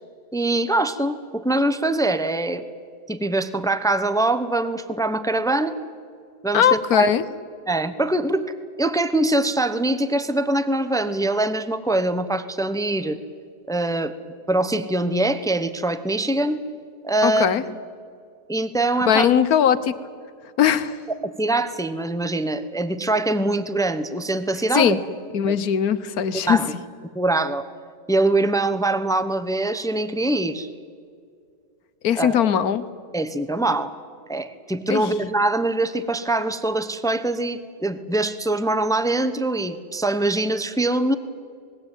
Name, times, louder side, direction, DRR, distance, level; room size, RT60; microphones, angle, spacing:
voice 1, 0.3-2.6 3.1-5.7 6.4-7.1 7.7-8.5 8.8-13.2 13.7-14.1 14.5-16.6 17.0-17.5 18.5-19.4 21.4-25.0 25.5-25.6 26.5-26.6 27.1-27.6 28.1-30.7 32.2-32.4 33.1-33.9 34.3-41.1, right 2 dB, 5° left, 11 dB, 0.5 m, -23 dB
voice 2, 6.5-7.2 17.2-17.6 19.1-20.0 20.6-21.0 24.7-25.0 25.3-26.8 32.0-32.9 34.9-35.1, left 9 dB, 60° left, 14 dB, 1.4 m, -20 dB
27.0 x 20.5 x 9.0 m, 2.3 s
omnidirectional pair, 1.9 m